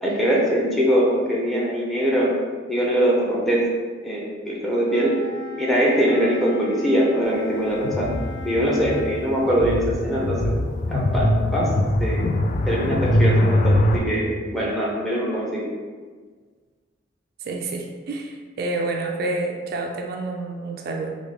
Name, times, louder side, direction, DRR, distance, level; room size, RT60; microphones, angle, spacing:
voice 1, 0.0-2.3 2.7-3.7 4.0-5.2 5.6-8.1 8.4-10.5 10.9-11.7 12.0-12.3 12.7-15.6, equal, ahead, -4 dB, 0.6 m, -22 dB
Wind instrument woodwind instrument, 4.8-9.3, equal, 85° left, 0.9 m, -38 dB
sound 1, 7.8-14.0, left 1 dB, 45° left, 0.3 m, -22 dB
voice 2, 17.4-21.2, right 2 dB, 55° right, 2 dB, 0.3 m, -28 dB
3.5 x 2.4 x 3.4 m, 1.5 s
head